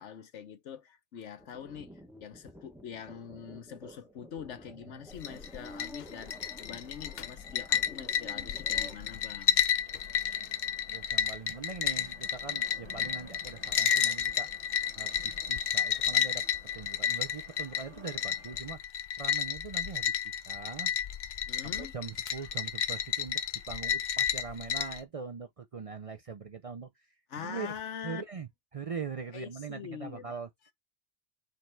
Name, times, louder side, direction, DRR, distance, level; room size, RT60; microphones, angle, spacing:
voice 1, 0.0-9.6 21.5-21.9 22.4-22.5 27.3-28.2 29.3-30.3, left 8 dB, 90° left, 1.2 m, -44 dB
sound 1, 1.4-9.0, equal, 5° right, 0.7 m, -51 dB
sound 2, 5.1-25.0, left 8 dB, 55° left, 0.5 m, -31 dB
sound 3, 5.3-18.6, right 1 dB, 25° right, 1.4 m, -56 dB
voice 2, 10.9-14.5 15.0-16.4 16.7-18.8 19.2-20.9 21.6-23.4 23.7-26.9 27.4-27.7 28.0-30.5, right 5 dB, 45° right, 0.4 m, -42 dB
6.5 x 3.3 x 4.5 m
omnidirectional pair, 1.2 m